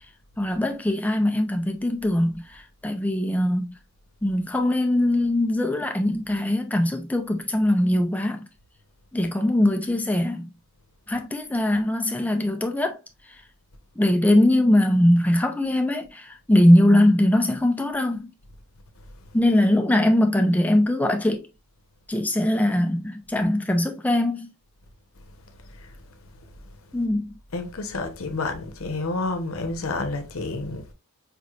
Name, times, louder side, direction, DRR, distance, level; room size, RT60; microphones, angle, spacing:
voice 1, 0.4-3.8 4.2-8.5 9.1-10.5 11.1-13.0 14.0-18.3 19.3-21.5 22.1-24.5 26.9-27.3, left 1 dB, 5° left, 0.5 m, -21 dB
voice 2, 25.6-26.0 27.5-30.9, left 3 dB, 70° left, 0.8 m, -30 dB
5.1 x 3.1 x 2.4 m
head